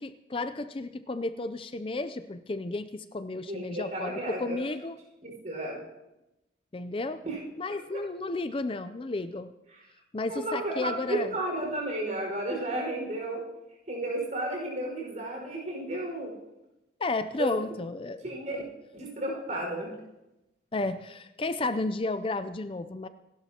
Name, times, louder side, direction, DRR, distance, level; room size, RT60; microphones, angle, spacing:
voice 1, 0.0-5.0 6.7-7.2 7.6-9.5 10.1-11.3 17.0-18.2 20.7-23.1, left 2 dB, 30° left, 11 dB, 0.4 m, -32 dB
voice 2, 3.5-4.6 5.2-5.8 7.2-7.4 7.9-8.0 9.7-9.8 10.3-13.4 13.9-16.3 17.4-17.5 18.2-18.6 18.9-19.9, right 1 dB, 45° right, -1 dB, 5.2 m, -33 dB
27.0 x 12.0 x 2.9 m, 0.95 s
head